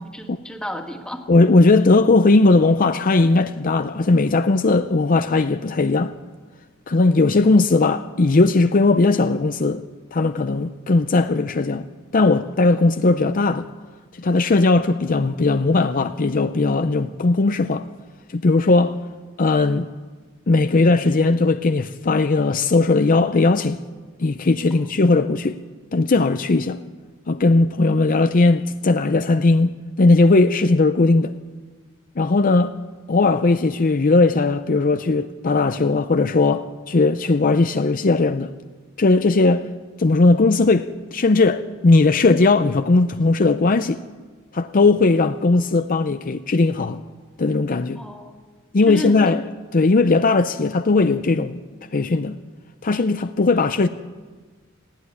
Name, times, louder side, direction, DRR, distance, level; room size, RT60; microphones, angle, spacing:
voice 1, 0.1-1.2 24.7-24.9 48.0-48.4 48.9-49.4, equal, 5° left, 2.1 m, -31 dB
voice 2, 1.3-6.1 6.9-9.8 10.1-11.9 12.1-13.7 14.2-17.9 18.3-19.0 19.4-19.9 20.5-23.8 24.2-25.6 25.9-26.8 27.3-31.3 32.2-32.7 33.1-38.5 39.0-39.7 40.0-44.0 44.5-47.0 47.4-48.0 48.7-49.4 49.7-51.6 51.9-52.4 52.8-53.9, left 3 dB, 45° left, 0.6 m, -18 dB
19.5 x 15.5 x 9.6 m
head